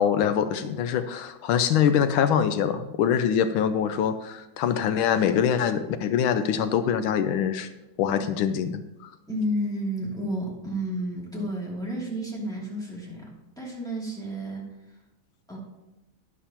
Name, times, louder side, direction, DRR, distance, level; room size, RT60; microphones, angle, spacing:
voice 1, 0.0-7.7 8.0-9.1, left 8 dB, 80° left, 10 dB, 1.4 m, -24 dB
voice 2, 9.3-13.3 13.6-14.6 15.5-15.6, equal, ahead, -4 dB, 2.5 m, -31 dB
11.5 x 10.5 x 2.9 m, 0.98 s
omnidirectional pair, 2.3 m